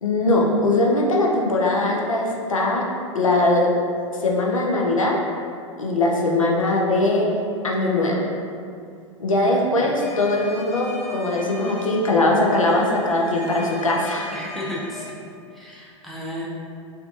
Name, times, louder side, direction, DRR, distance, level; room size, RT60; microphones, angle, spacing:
voice 1, 0.0-2.8 3.1-3.7 4.2-5.2 5.8-7.3 7.6-8.2 9.2-14.4, left 2 dB, 90° left, -2 dB, 0.4 m, -21 dB
sound 1, 10.0-15.0, left 2 dB, 40° left, 0.7 m, -38 dB
voice 2, 14.3-15.1 15.5-16.4, left 1 dB, ahead, -7 dB, 0.4 m, -33 dB
2.5 x 2.3 x 2.3 m, 2.4 s
figure-of-eight pair, 95°, 17 cm